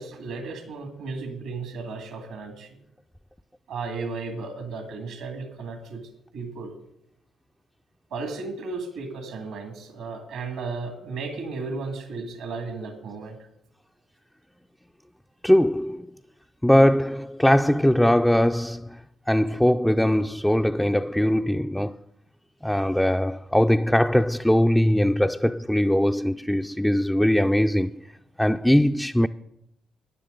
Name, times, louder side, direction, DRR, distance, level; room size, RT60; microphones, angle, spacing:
voice 1, 0.0-2.7 3.7-6.0 6.3-6.7 8.1-13.4, right 4 dB, 80° right, 2.1 m, -34 dB
voice 2, 15.4-16.1 16.6-19.0 19.3-22.0 22.6-28.0 28.4-29.3, equal, 5° left, 0.4 m, -21 dB
13.5 x 9.8 x 3.9 m
hypercardioid pair, 50°, 0 cm